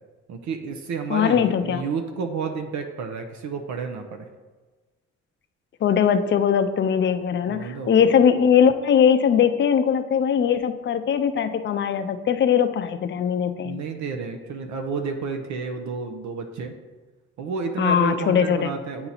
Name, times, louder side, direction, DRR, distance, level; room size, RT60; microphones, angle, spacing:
voice 1, 0.3-4.3 7.5-8.0 13.6-16.7 17.4-19.1, right 5 dB, 70° right, 5 dB, 0.6 m, -31 dB
voice 2, 1.1-1.8 5.8-13.8 17.8-18.7, left 8 dB, 40° left, 10 dB, 0.4 m, -20 dB
8.5 x 2.9 x 4.0 m, 1.3 s
cardioid pair, 90°, 30 cm